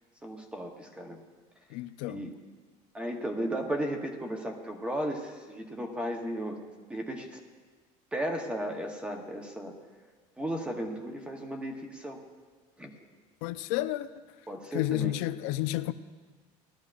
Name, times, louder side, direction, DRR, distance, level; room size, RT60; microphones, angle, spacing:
voice 1, 0.2-1.2 2.1-2.4 2.9-6.6 6.9-7.4 8.1-9.7 10.4-12.2 12.8-12.9 14.5-15.2, right 1 dB, 5° right, 0.8 m, -35 dB
voice 2, 1.7-2.2 13.4-14.1 14.7-15.9, left 15 dB, 90° left, 0.5 m, -31 dB
18.5 x 12.5 x 2.4 m
cardioid pair, 180°, 16 cm